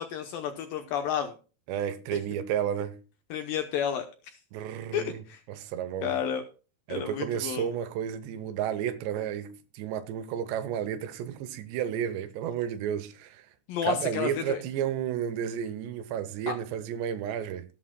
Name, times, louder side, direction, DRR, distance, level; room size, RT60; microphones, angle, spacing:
voice 1, 0.0-1.3 3.3-4.1 4.9-5.4 6.0-6.4 6.9-7.7 13.7-14.6 16.5-16.6, left 9 dB, 90° left, 2.0 m, -31 dB
voice 2, 1.7-3.0 4.5-5.2 5.5-6.2 6.9-13.4 13.8-17.7, right 9 dB, 75° right, 3.0 m, -32 dB
19.0 x 8.5 x 2.2 m
omnidirectional pair, 5.3 m